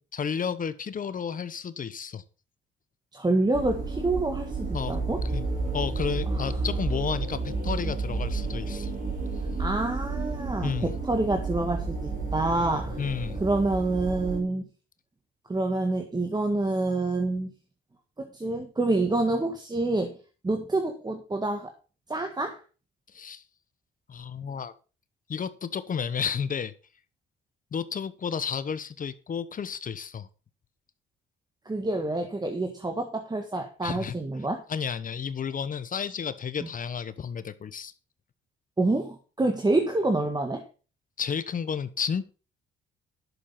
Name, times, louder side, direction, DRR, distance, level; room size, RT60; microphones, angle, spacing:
voice 1, 0.1-2.2 4.7-5.0 5.3-5.4 5.7-8.9 10.6-10.9 13.0-13.4 23.1-23.4 24.1-24.7 25.3-26.7 27.7-30.3 33.8-34.2 34.7-37.9 41.2-42.4, left 7 dB, 45° left, 0.9 m, -32 dB
voice 2, 3.1-5.2 6.3-6.4 9.6-13.0 13.4-14.7 15.5-17.5 18.2-20.2 20.4-21.7 22.1-22.6 31.6-34.6 36.6-36.7 38.8-40.7, right 2 dB, 20° right, 1.7 m, -27 dB
sound 1, 3.5-14.4, right 3 dB, 45° right, 4.6 m, -31 dB
11.0 x 6.7 x 5.7 m
cardioid pair, 90°, 20 cm